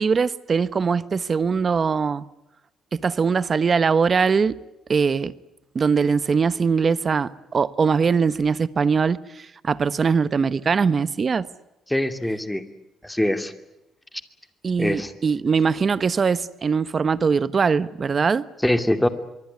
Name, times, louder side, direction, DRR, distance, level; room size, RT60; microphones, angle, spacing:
voice 1, 0.0-2.2 2.9-4.6 4.9-5.3 5.7-11.5 14.6-18.5, right 5 dB, 40° right, 1.1 m, -21 dB
voice 2, 11.9-12.6 13.0-13.5 14.8-15.1 18.6-19.1, left 1 dB, 5° left, 2.6 m, -22 dB
25.0 x 24.0 x 9.6 m
cardioid pair, 90°, 0 cm